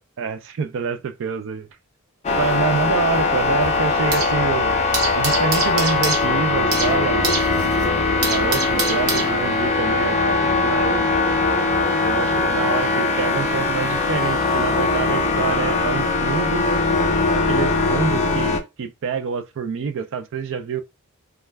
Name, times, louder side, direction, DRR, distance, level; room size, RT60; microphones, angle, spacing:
voice 1, 0.0-1.7 2.4-4.8 5.1-7.3 8.2-11.1 12.0-16.7 17.3-20.8, right 6 dB, 60° right, 0.4 m, -26 dB
sound 1, 2.2-18.6, left 3 dB, 30° left, 0.5 m, -21 dB
sound 2, 2.3-4.5 4.7-9.8, right 4 dB, 75° right, 0.9 m, -28 dB
2.3 x 2.2 x 3.3 m
head